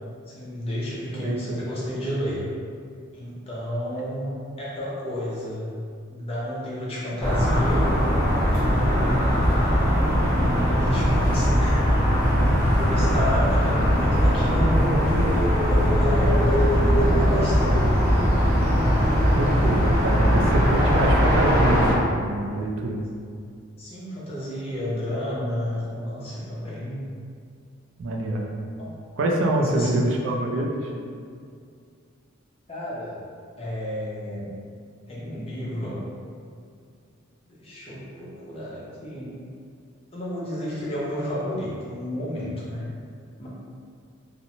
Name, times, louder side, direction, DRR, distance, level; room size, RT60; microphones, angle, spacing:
voice 1, 0.3-2.4 3.1-5.7 6.1-7.9 10.3-11.9 12.8-17.9 23.8-27.0 28.8-28.9 29.3-30.1 32.7-33.2 33.6-34.5 35.1-36.0 37.5-39.4 40.1-42.8 43.4-43.5, equal, 30° left, -7 dB, 0.5 m, -31 dB
voice 2, 1.1-1.6 12.4-12.6 19.4-23.1 28.0-28.5 29.2-30.9, right 1 dB, 65° right, 0 dB, 0.3 m, -26 dB
sound 1, 7.2-21.9, equal, 5° left, 1.1 m, -20 dB
2.8 x 2.0 x 2.6 m, 2.2 s
head